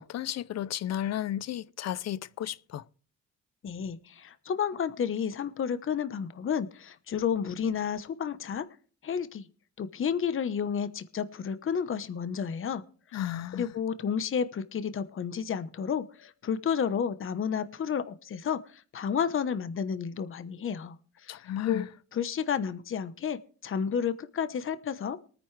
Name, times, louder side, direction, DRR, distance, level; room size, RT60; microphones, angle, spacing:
voice 1, 0.0-2.8 13.1-13.7 21.3-21.9, left 11 dB, 60° left, 0.6 m, -33 dB
voice 2, 3.6-8.6 9.0-9.5 9.8-12.8 13.1-13.2 13.5-21.9 22.1-25.2, left 7 dB, 45° left, 1.0 m, -31 dB
23.5 x 9.6 x 3.3 m
cardioid pair, 90°, 30 cm